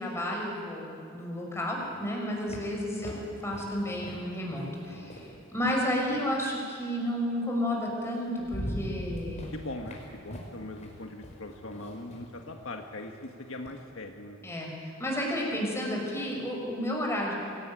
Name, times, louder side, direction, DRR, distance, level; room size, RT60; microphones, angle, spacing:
voice 1, 0.0-9.6 14.4-17.3, equal, 15° left, -1 dB, 6.2 m, -32 dB
sound 1, 1.8-6.4 7.6-7.7 8.1-13.8, equal, 35° left, 5.0 m, -42 dB
voice 2, 4.9-5.2 9.5-14.4, left 2 dB, 70° left, 3 dB, 1.7 m, -41 dB
26.0 x 18.0 x 9.2 m, 2.6 s
head